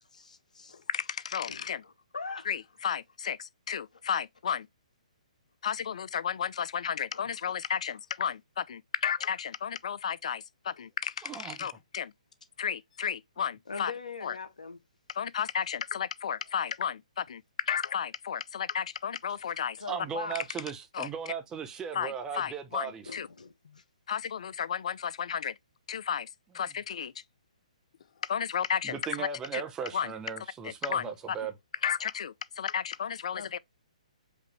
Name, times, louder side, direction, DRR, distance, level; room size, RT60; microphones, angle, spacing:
voice 1, 0.1-0.8 1.5-2.5 7.1-7.2 13.7-14.8 19.8-20.4 23.0-23.8 33.3-33.5, left 4 dB, 85° left, 0.9 m, -41 dB
voice 2, 0.9-1.8 2.5-4.7 5.6-12.1 12.6-13.9 14.2-14.4 15.1-19.8 20.9-21.1 21.9-23.3 24.1-25.5 25.9-26.3 26.5-27.1 28.2-29.3 29.5-29.6 29.9-30.1 30.6-31.4 31.8-33.6, left 8 dB, 60° left, 0.4 m, -33 dB
voice 3, 11.2-11.7 19.9-23.1 28.8-31.5, right 6 dB, 15° right, 0.8 m, -37 dB
5.1 x 2.6 x 3.1 m
hypercardioid pair, 135°, 4 cm